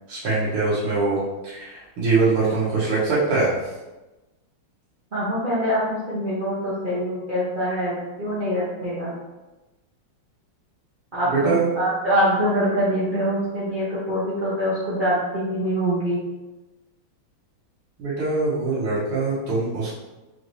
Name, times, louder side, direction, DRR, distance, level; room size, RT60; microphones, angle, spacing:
voice 1, 0.1-1.2 1.5-3.5 11.2-11.7 18.0-19.9, right 3 dB, 90° right, -8 dB, 2.0 m, -23 dB
voice 2, 5.1-9.1 11.1-16.2, equal, 65° right, -9 dB, 0.5 m, -24 dB
5.0 x 2.6 x 3.2 m, 1.1 s
omnidirectional pair, 2.3 m